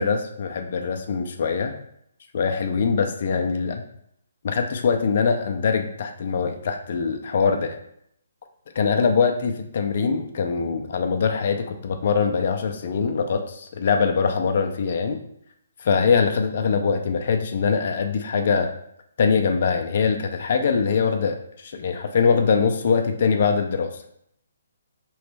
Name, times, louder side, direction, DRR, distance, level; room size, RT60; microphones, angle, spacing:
voice 1, 0.0-1.7 2.3-3.8 4.4-7.8 8.8-15.2 15.8-18.7 19.2-23.9, left 5 dB, 55° left, 5 dB, 0.5 m, -23 dB
4.2 x 3.1 x 3.3 m, 0.71 s
hypercardioid pair, 150°, 0 cm